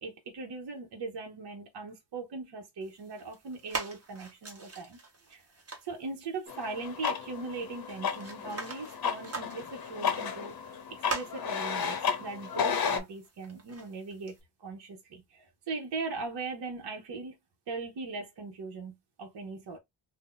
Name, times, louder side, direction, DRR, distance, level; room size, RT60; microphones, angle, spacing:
voice 1, 0.0-5.0 5.3-5.5 5.8-17.4 17.7-19.8, right 3 dB, 60° right, 0.9 m, -40 dB
sound 1, 2.8-14.4, right 3 dB, 35° right, 1.0 m, -44 dB
sound 2, 6.5-13.0, left 7 dB, 55° left, 0.7 m, -33 dB
2.6 x 2.1 x 3.7 m
wide cardioid pair, 130°, 44 cm